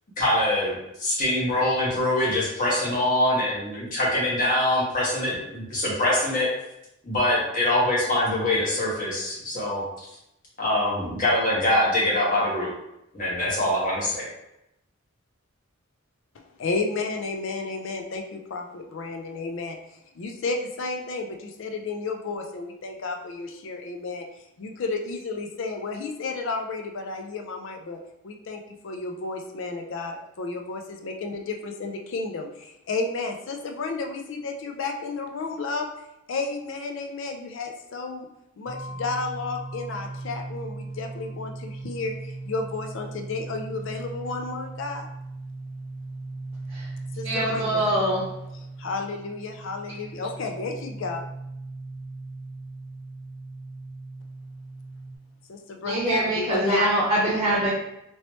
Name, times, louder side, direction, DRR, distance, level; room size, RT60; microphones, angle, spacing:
voice 1, 0.2-6.5 7.0-9.8 10.6-12.7 13.1-14.2, left 1 dB, 40° left, -5 dB, 1.1 m, -24 dB
voice 2, 16.3-19.8 20.2-24.3 24.6-35.9 36.3-38.3 38.6-45.1 47.2-47.9 48.8-51.2 55.5-57.0, left 3 dB, 65° left, 4 dB, 0.4 m, -32 dB
sound 1, 38.7-55.2, right 2 dB, 90° left, 0.9 m, -38 dB
voice 3, 47.2-48.2 55.9-57.7, right 1 dB, 15° right, -7 dB, 0.8 m, -23 dB
3.0 x 2.9 x 3.0 m, 0.84 s
head